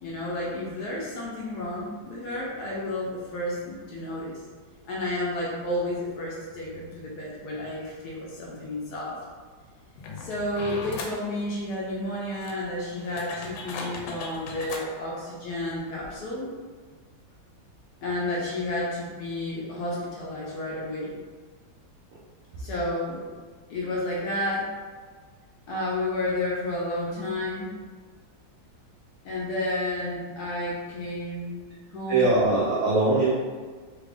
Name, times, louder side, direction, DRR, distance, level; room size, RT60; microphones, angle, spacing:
voice 1, 0.0-4.4 4.9-9.2 10.2-16.5 18.0-21.1 22.6-23.3 23.7-24.7 25.7-27.7 29.2-32.4, left 1 dB, 70° left, -4 dB, 1.0 m, -31 dB
sound 1, 10.0-11.2 12.0-12.1 12.4-14.9 15.7-15.8 16.0-16.2, left 3 dB, 85° left, 1.4 m, -38 dB
voice 2, 32.1-33.3, right 2 dB, 80° right, -6 dB, 0.7 m, -21 dB
3.3 x 2.5 x 3.4 m, 1.5 s
omnidirectional pair, 2.1 m